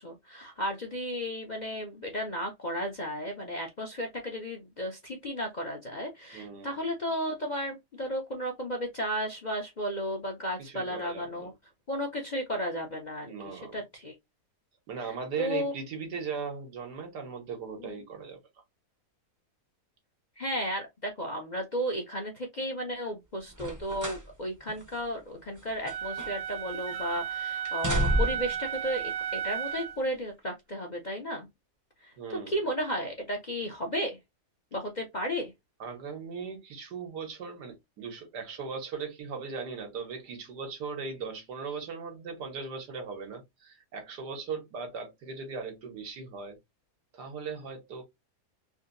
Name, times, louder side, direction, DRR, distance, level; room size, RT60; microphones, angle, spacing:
voice 1, 0.0-11.5 11.9-14.2 15.4-15.7 17.8-18.0 20.4-31.5 32.0-32.1 32.5-34.2 34.7-35.5, equal, 40° left, 0.6 m, -34 dB
voice 2, 6.3-6.8 10.6-11.5 13.2-13.8 14.9-18.4 32.2-32.7 35.8-46.6 47.1-48.0, right 5 dB, 90° right, 1.8 m, -38 dB
sound 1, 23.5-24.3 24.7-24.8 25.5-26.6 26.9-27.2 27.6-28.6 29.5-29.6, right 1 dB, 20° right, 0.5 m, -31 dB
Wind instrument woodwind instrument, 25.9-30.0, right 9 dB, 70° right, 0.8 m, -34 dB
3.8 x 2.7 x 2.5 m
omnidirectional pair, 1.7 m